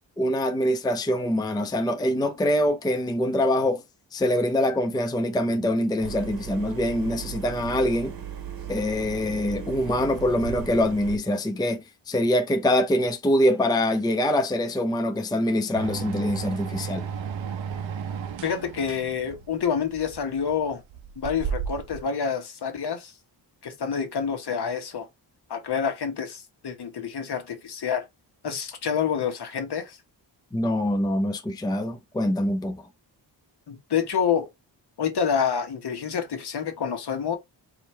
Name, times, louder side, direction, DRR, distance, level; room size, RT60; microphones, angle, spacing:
voice 1, 0.2-3.8 4.1-8.1 8.7-17.1 30.5-32.9, left 1 dB, 10° left, 0.5 m, -24 dB
sound 1, 6.0-11.2, right 8 dB, 50° right, 1.0 m, -37 dB
sound 2, 15.7-22.0, right 7 dB, 75° right, 0.8 m, -33 dB
voice 2, 18.4-20.8 21.2-23.1 23.6-25.1 25.5-28.1 28.4-30.0 33.7-34.5 35.0-37.4, left 7 dB, 60° left, 1.3 m, -28 dB
4.9 x 3.0 x 3.2 m
wide cardioid pair, 145°, 45 cm